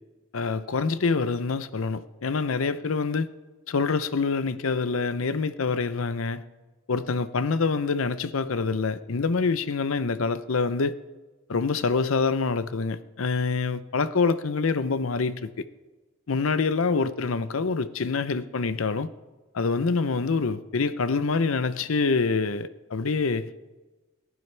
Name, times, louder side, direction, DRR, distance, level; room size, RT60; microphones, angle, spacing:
voice 1, 0.3-3.3 3.7-6.4 6.9-10.9 11.5-15.6 16.3-19.1 19.5-23.5, left 4 dB, 75° left, 0.7 m, -26 dB
28.5 x 11.5 x 3.3 m
head